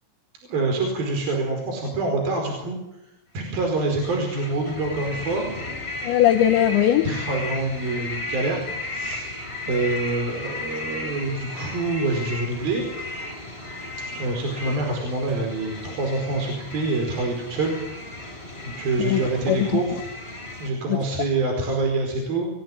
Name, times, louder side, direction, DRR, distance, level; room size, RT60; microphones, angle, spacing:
voice 1, 0.5-2.8 3.3-5.5 7.0-9.3 9.7-12.8 14.1-20.0 20.6-22.5, right 2 dB, 50° right, 2 dB, 6.4 m, -26 dB
Loud frogs, 3.6-20.7, left 2 dB, 10° left, 7.2 m, -35 dB
voice 2, 6.0-7.1 19.0-19.8 20.9-21.0, left 11 dB, 75° left, 2 dB, 3.3 m, -20 dB
29.5 x 20.5 x 9.9 m, 0.91 s
omnidirectional pair, 5.7 m